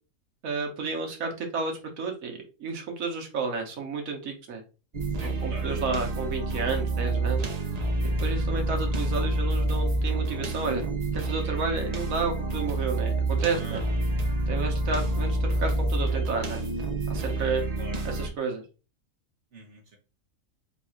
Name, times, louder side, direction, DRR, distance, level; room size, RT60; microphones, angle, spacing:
voice 1, 0.4-4.6 5.2-7.4 8.0-10.8 11.1-13.8 14.5-16.6 17.1-17.6 18.0-18.6, right 4 dB, 85° right, 2 dB, 1.5 m, -31 dB
sound 1, 4.9-18.3, right 2 dB, 40° right, 0.6 m, -28 dB
voice 2, 5.1-5.7 13.5-14.0 17.8-18.0 19.5-20.0, right 1 dB, 60° right, 0 dB, 1.4 m, -44 dB
3.6 x 2.4 x 4.3 m, 0.32 s
omnidirectional pair, 1.4 m